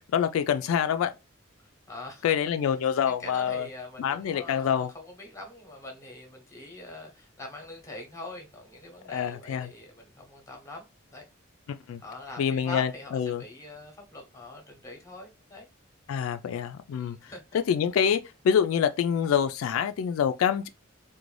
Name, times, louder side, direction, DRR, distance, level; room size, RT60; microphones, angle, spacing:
voice 1, 0.1-1.1 2.2-3.7 4.0-4.9 9.1-9.7 11.9-12.0 12.4-13.4 16.1-20.7, left 8 dB, 85° left, 0.3 m, -26 dB
voice 2, 1.9-2.2 2.7-2.8 3.0-10.9 11.1-11.3 12.0-15.7 16.9-17.4, left 2 dB, 15° left, 0.7 m, -43 dB
2.5 x 2.2 x 3.1 m
head